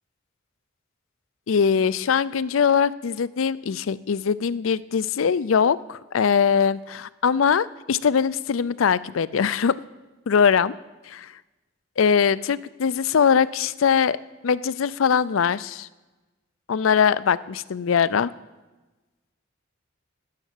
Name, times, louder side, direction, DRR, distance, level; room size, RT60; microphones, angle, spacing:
voice 1, 1.5-9.7 10.3-10.7 11.1-11.3 12.0-14.2 14.4-15.9 16.7-18.3, left 6 dB, 90° left, 18 dB, 0.5 m, -21 dB
12.5 x 10.0 x 7.3 m, 1.2 s
head